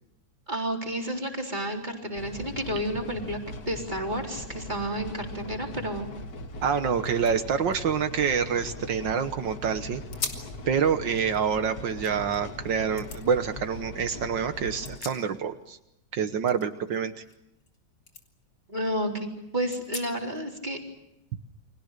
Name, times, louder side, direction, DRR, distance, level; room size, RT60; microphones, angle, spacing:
voice 1, 0.5-3.4 3.7-6.1 18.7-20.8, right 1 dB, 25° right, 2 dB, 4.0 m, -31 dB
sound 1, 2.1-15.0, left 2 dB, 55° left, 2.3 m, -40 dB
sound 2, 6.6-6.7 7.0-9.2 9.6-9.7 10.1-10.6 11.0-12.4 13.0-13.2 14.6-15.7 16.0-17.8 18.1-18.2 18.7-18.8 19.7-20.4, left 4 dB, 85° left, 3.6 m, -41 dB
voice 2, 6.6-10.0 10.7-15.8 16.1-17.2, right 7 dB, 70° right, 9 dB, 1.9 m, -27 dB
29.5 x 24.5 x 6.7 m, 0.84 s
omnidirectional pair, 2.0 m